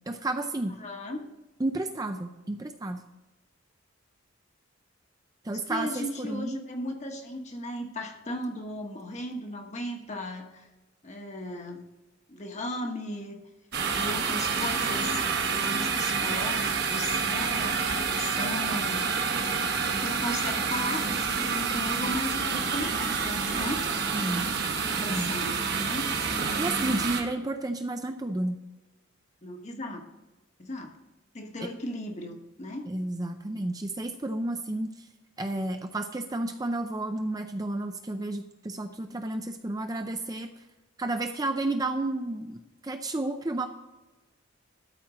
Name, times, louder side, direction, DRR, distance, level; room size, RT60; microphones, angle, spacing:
voice 1, 0.1-0.8 1.6-3.0 5.4-6.6 24.1-24.5 25.0-25.4 26.6-28.6 31.6-31.7 32.9-35.1 35.4-40.5 41.0-43.7, right 2 dB, 20° right, 6 dB, 0.5 m, -31 dB
voice 2, 0.8-1.2 5.7-10.7 11.0-11.8 12.3-13.4 13.9-15.2 15.5-19.2 19.9-23.8 24.7-26.1 29.4-30.1 30.6-31.0 31.3-32.9, left 1 dB, 35° left, 3 dB, 1.2 m, -36 dB
sound 1, 13.7-27.2, right 5 dB, 50° right, 1.2 m, -28 dB
13.0 x 4.4 x 6.3 m, 1.1 s
head